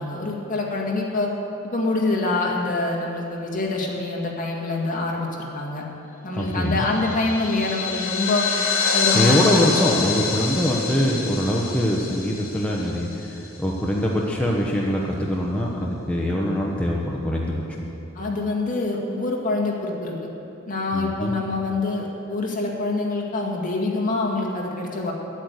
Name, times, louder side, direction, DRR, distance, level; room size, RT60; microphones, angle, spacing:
voice 1, 0.0-1.3 1.6-5.8 6.2-8.5 8.9-9.5 18.1-20.2 20.7-25.1, left 3 dB, 40° left, -2 dB, 2.0 m, -25 dB
voice 2, 6.3-6.9 9.1-17.6 20.9-21.3, equal, 5° left, -3 dB, 1.0 m, -23 dB
sound 1, 6.6-13.5, left 5 dB, 75° left, 3.1 m, -26 dB
11.0 x 8.7 x 8.1 m, 2.9 s
head